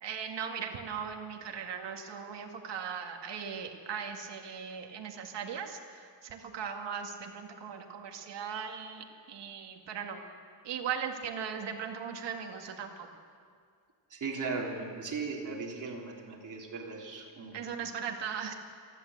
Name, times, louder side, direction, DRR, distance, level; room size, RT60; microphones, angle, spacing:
voice 1, 0.0-10.2 10.6-13.1 17.5-18.5, right 7 dB, 70° right, 3 dB, 2.1 m, -38 dB
voice 2, 14.1-17.7, right 4 dB, 45° right, -1 dB, 3.4 m, -37 dB
29.5 x 11.5 x 8.1 m, 2.2 s
wide cardioid pair, 165°, 43 cm